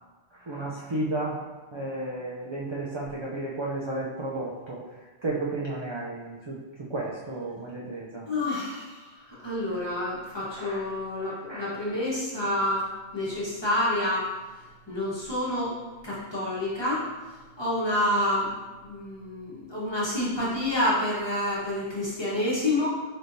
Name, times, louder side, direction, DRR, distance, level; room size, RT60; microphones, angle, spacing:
voice 1, 0.5-1.4 1.7-4.8 5.2-6.5 6.9-8.2 10.5-10.8 11.5-11.7, right 2 dB, 45° right, -5 dB, 0.3 m, -32 dB
voice 2, 8.2-8.9 9.4-14.3 14.9-15.7 16.0-17.0 17.6-18.5 18.8-22.9, left 1 dB, 25° left, -8 dB, 1.0 m, -28 dB
4.3 x 3.5 x 2.6 m, 1.2 s
omnidirectional pair, 1.2 m